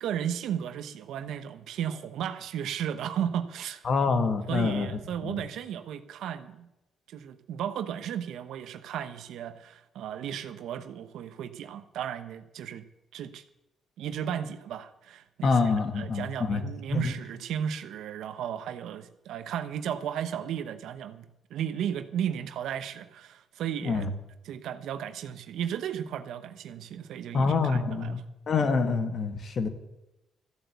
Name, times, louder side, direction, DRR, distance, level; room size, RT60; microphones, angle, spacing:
voice 1, 0.0-3.9 4.5-6.7 7.1-12.8 13.1-13.4 14.0-21.2 21.5-24.1 24.4-28.2, right 9 dB, 80° right, 11 dB, 0.9 m, -34 dB
voice 2, 3.8-5.4 15.4-16.6 16.9-17.1 23.8-24.1 27.3-29.7, left 4 dB, 50° left, 8 dB, 1.7 m, -26 dB
14.0 x 8.0 x 8.1 m, 0.94 s
cardioid pair, 90°, 0 cm